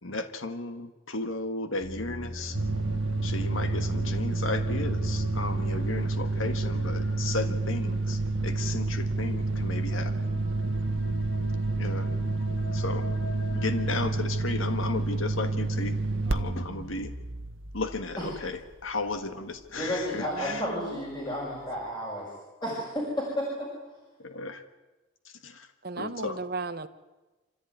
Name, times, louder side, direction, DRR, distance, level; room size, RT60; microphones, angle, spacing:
voice 1, 0.0-2.6 3.2-10.3 11.8-12.1 12.7-13.1 13.5-16.0 16.3-17.1 17.7-20.7 24.2-24.6 25.2-25.7 26.0-26.4, left 3 dB, 75° left, 1.5 m, -34 dB
sound 1, 1.8-16.5, left 1 dB, 55° left, 1.6 m, -42 dB
sound 2, 2.5-18.9, right 2 dB, 75° right, 1.2 m, -29 dB
voice 2, 19.7-22.3 22.6-23.7, equal, 20° left, 5.9 m, -32 dB
voice 3, 20.3-21.1 25.8-26.9, right 3 dB, 45° right, 1.1 m, -36 dB
26.0 x 15.0 x 9.4 m
head